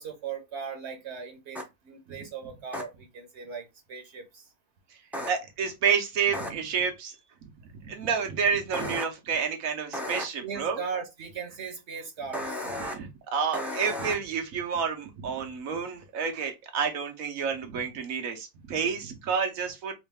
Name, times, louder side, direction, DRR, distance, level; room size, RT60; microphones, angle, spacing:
voice 1, 0.0-4.5 10.4-12.7, right 6 dB, 60° right, 1.0 m, -38 dB
sound 1, 1.5-1.6 2.7-2.8 5.1-5.3 6.3-6.5 8.7-9.0 9.9-10.2 12.3-12.9 13.5-14.1, left 1 dB, ahead, 0.4 m, -33 dB
voice 2, 5.3-7.1 7.8-10.8 12.8-19.9, right 6 dB, 85° right, 1.3 m, -29 dB
3.2 x 3.1 x 3.4 m
omnidirectional pair, 1.4 m